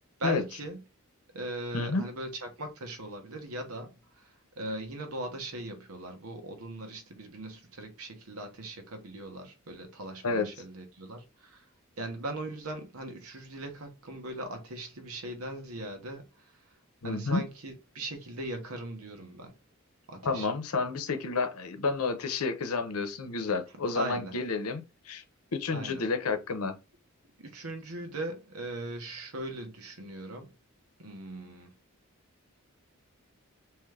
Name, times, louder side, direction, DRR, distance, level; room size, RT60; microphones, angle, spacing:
voice 1, 0.2-0.8 1.3-11.6 12.0-16.5 17.0-19.5 20.1-20.5 23.9-24.4 25.7-26.0 27.4-30.5 31.0-31.7, right 1 dB, 85° right, 1.0 m, -39 dB
voice 2, 1.7-2.1 10.2-10.5 17.0-17.4 20.2-25.2 25.5-26.7, left 4 dB, 85° left, 0.8 m, -30 dB
3.6 x 3.0 x 3.3 m
head